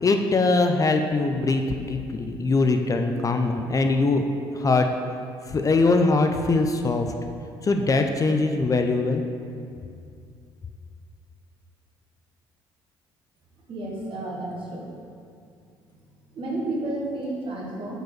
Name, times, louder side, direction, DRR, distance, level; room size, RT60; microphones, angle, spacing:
voice 1, 0.0-4.3 4.5-4.9 5.5-7.1 7.6-9.2, left 3 dB, 30° left, 5 dB, 0.5 m, -22 dB
voice 2, 13.7-14.9 16.3-18.0, right 2 dB, 55° right, -3 dB, 1.7 m, -31 dB
4.9 x 4.6 x 6.1 m, 2.4 s
supercardioid pair, 70°, 11 cm